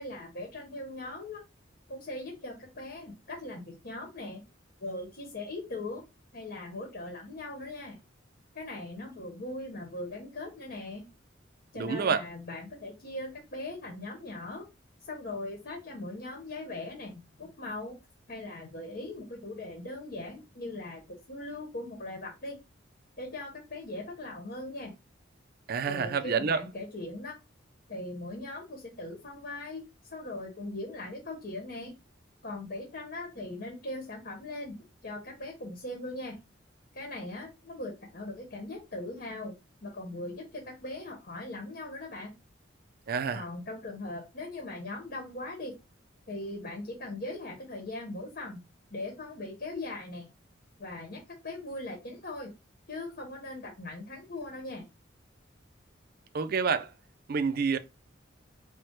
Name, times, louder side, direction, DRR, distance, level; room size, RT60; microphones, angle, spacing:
voice 1, 0.0-1.4 1.9-4.4 4.8-6.0 6.3-8.0 8.5-11.0 11.7-14.7 15.0-17.9 18.3-21.0 21.3-22.6 23.2-24.9 25.9-27.3 27.9-29.8 30.1-31.9 32.4-34.7 35.0-36.4 36.9-39.5 39.8-42.3 43.3-45.7 46.3-48.6 48.9-50.3 50.8-52.5 52.9-54.9, left 2 dB, 55° left, 1.1 m, -40 dB
voice 2, 11.8-12.2 25.7-26.6 43.1-43.5 56.3-56.9 57.3-57.8, right 5 dB, 50° right, 0.4 m, -28 dB
4.6 x 2.1 x 4.5 m
head